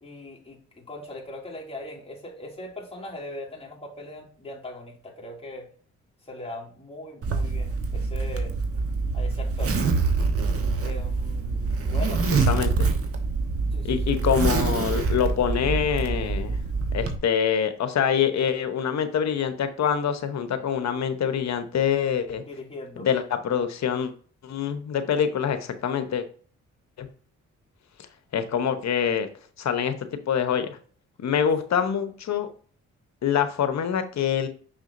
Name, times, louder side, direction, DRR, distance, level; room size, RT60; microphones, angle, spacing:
voice 1, 0.0-5.7 6.3-8.6 9.1-9.8 10.8-12.2 13.7-14.2 22.5-23.1, left 1 dB, 20° left, -3 dB, 2.6 m, -40 dB
Zipper (clothing), 7.2-17.2, right 4 dB, 50° right, 1.2 m, -25 dB
voice 2, 12.5-12.9 13.8-16.6 16.9-22.4 23.0-24.1 24.4-26.2 27.0-27.1 28.3-29.3 29.6-29.9 30.3-30.7 31.2-32.5 33.2-34.5, left 8 dB, 65° left, 9 dB, 1.0 m, -25 dB
6.2 x 5.9 x 2.7 m, 0.43 s
cardioid pair, 70°, 30 cm